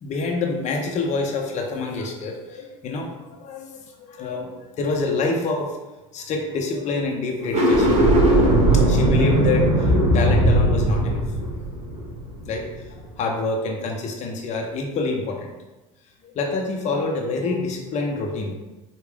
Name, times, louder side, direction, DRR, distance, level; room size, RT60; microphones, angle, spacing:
voice 1, 0.0-5.7 6.1-7.9 8.7-11.2 12.5-12.6 13.1-15.5 16.2-18.6, left 3 dB, 45° left, 1 dB, 0.7 m, -27 dB
sound 1, 7.4-12.7, right 1 dB, 40° right, 1.0 m, -18 dB
3.4 x 2.4 x 3.3 m, 1.1 s
supercardioid pair, 95°, 17 cm